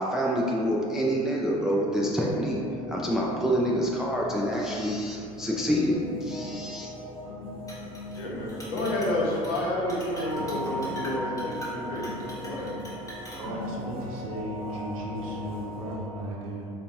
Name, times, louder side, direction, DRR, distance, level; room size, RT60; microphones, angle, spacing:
voice 1, 0.0-2.6 2.9-6.9, equal, 5° right, -3 dB, 0.3 m, -27 dB
sound 1, 1.8-16.2, equal, 90° left, 0.5 m, -40 dB
sound 2, 4.2-16.0, left 2 dB, 35° right, 0.8 m, -42 dB
Chink clink, 7.7-8.2 8.5-9.2 9.4-9.6 9.9-13.4, left 1 dB, 15° left, 1.0 m, -43 dB
voice 2, 8.2-12.9, left 1 dB, 60° left, -4 dB, 0.8 m, -30 dB
voice 3, 13.3-16.7, equal, 70° right, -2 dB, 0.6 m, -35 dB
3.8 x 2.2 x 2.7 m, 2.3 s
figure-of-eight pair, 70°, 19 cm